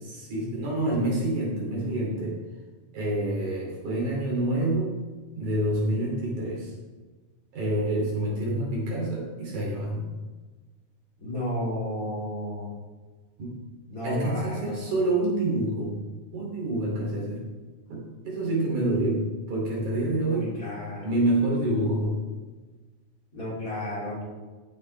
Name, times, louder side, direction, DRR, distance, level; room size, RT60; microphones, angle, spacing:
voice 1, 0.0-2.4 2.9-4.9 5.4-6.7 7.5-10.1 13.4-13.5 14.0-16.0 16.3-17.4 17.9-20.5 21.0-22.2, right 1 dB, 65° right, -4 dB, 4.3 m, -27 dB
voice 2, 11.2-12.7 13.9-14.8 20.3-21.1 23.3-24.2, left 1 dB, 25° left, -7 dB, 3.6 m, -32 dB
15.0 x 8.3 x 3.4 m, 1.3 s
omnidirectional pair, 3.7 m